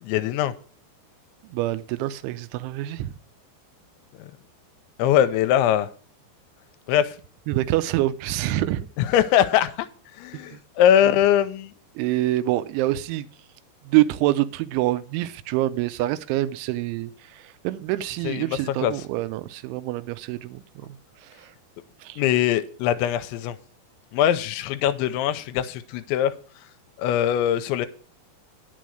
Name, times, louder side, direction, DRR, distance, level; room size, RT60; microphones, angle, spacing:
voice 1, 0.0-0.5 4.2-4.3 5.0-5.9 6.9-7.2 9.0-9.9 10.2-11.7 18.2-18.9 22.2-23.6 24.1-26.3 27.0-27.9, left 10 dB, 85° left, 11 dB, 3.0 m, -22 dB
voice 2, 1.4-3.1 7.5-8.9 10.3-10.6 11.1-11.2 12.0-13.3 13.8-21.5 22.0-22.2, right 15 dB, 90° right, 13 dB, 3.1 m, -26 dB
10.5 x 6.9 x 6.3 m, 0.42 s
omnidirectional pair, 5.3 m